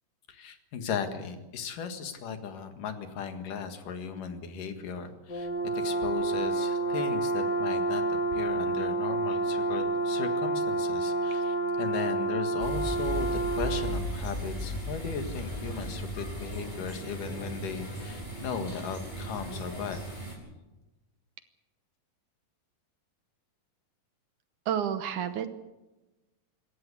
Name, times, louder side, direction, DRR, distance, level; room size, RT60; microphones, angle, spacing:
voice 1, 0.3-20.0, left 6 dB, 70° left, 7 dB, 3.3 m, -37 dB
Brass instrument, 5.3-14.0, right 2 dB, 35° left, 2.5 m, -29 dB
sound 1, 12.6-20.4, right 1 dB, 10° left, 5.3 m, -36 dB
voice 2, 24.7-25.5, right 9 dB, 70° right, 10 dB, 2.3 m, -30 dB
26.0 x 14.0 x 8.4 m, 1.1 s
omnidirectional pair, 4.1 m